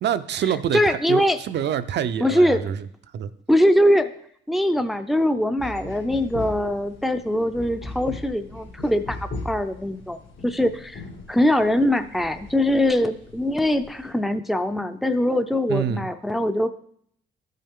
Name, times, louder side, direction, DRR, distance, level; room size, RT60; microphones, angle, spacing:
voice 1, 0.0-2.8 3.1-3.3 15.7-16.1, right 9 dB, 60° right, 11 dB, 0.5 m, -26 dB
voice 2, 0.7-1.4 2.2-2.7 3.5-4.1 4.5-9.2 9.4-10.2 10.4-11.0 11.3-16.7, left 1 dB, ahead, 9 dB, 0.5 m, -22 dB
sound 1, 5.6-14.1, left 2 dB, 75° left, 2.0 m, -39 dB
13.0 x 5.6 x 3.6 m, 0.68 s
cardioid pair, 90°, 20 cm